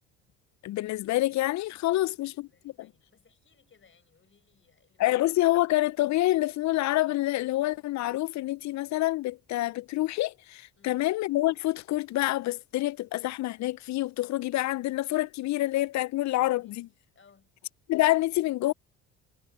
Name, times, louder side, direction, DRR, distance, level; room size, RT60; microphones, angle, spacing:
voice 1, 0.6-2.3 2.6-2.9 5.0-16.9 17.9-18.7, left 16 dB, 50° left, 0.7 m, -27 dB
voice 2, 1.9-5.1 10.7-11.0 16.5-16.8 17.1-17.5, left 6 dB, 35° left, 5.5 m, -62 dB
hypercardioid pair, 65°, 37 cm